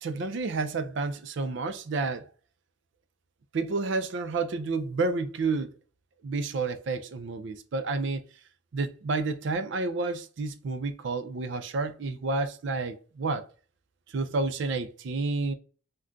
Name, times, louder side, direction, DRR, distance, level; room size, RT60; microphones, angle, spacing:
voice 1, 0.0-2.2 3.5-5.7 6.2-8.2 8.7-13.5 14.1-15.5, right 3 dB, 60° right, 0.4 m, -30 dB
2.4 x 2.3 x 3.7 m
head